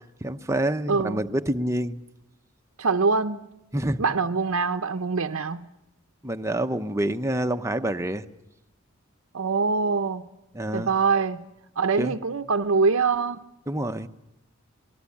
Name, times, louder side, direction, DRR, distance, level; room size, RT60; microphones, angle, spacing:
voice 1, 0.0-2.0 3.7-4.0 6.2-8.3 10.5-10.9 12.0-12.2 13.7-14.1, right 1 dB, 15° right, 0.8 m, -27 dB
voice 2, 0.9-1.2 2.8-3.5 4.0-5.7 9.3-10.2 10.7-11.4 11.8-13.5, right 4 dB, 90° right, 0.8 m, -24 dB
26.5 x 19.5 x 8.6 m
head